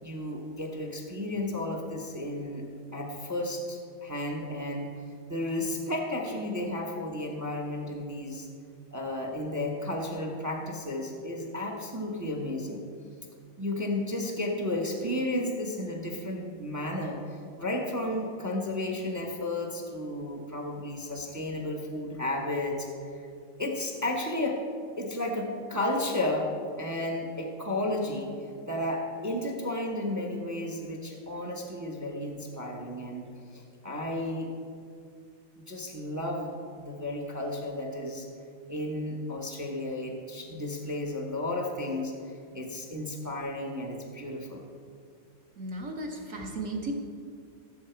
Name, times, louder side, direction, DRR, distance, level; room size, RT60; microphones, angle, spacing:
voice 1, 0.0-2.7 2.9-4.9 5.3-8.5 8.9-12.8 13.6-23.2 23.6-24.6 25.0-26.5 26.8-28.3 28.7-33.3 33.5-34.6 35.7-38.3 38.7-44.6, left 1 dB, 15° right, 1 dB, 0.6 m, -33 dB
voice 2, 45.6-46.9, right 2 dB, 45° right, 1 dB, 1.3 m, -35 dB
16.0 x 7.8 x 4.5 m, 2.3 s
omnidirectional pair, 2.3 m